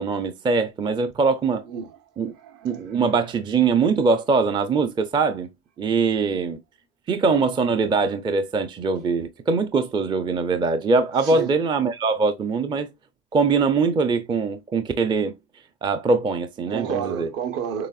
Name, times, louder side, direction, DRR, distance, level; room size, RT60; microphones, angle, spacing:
voice 1, 0.0-1.6 2.2-2.3 2.6-5.5 5.8-6.6 7.1-12.9 13.3-15.3 15.8-17.3, right 4 dB, 15° right, 0.4 m, -22 dB
voice 2, 1.7-2.0 2.3-2.8 11.2-11.6 16.7-17.9, right 7 dB, 55° right, 1.1 m, -30 dB
6.7 x 3.3 x 2.3 m
cardioid pair, 150°, 29 cm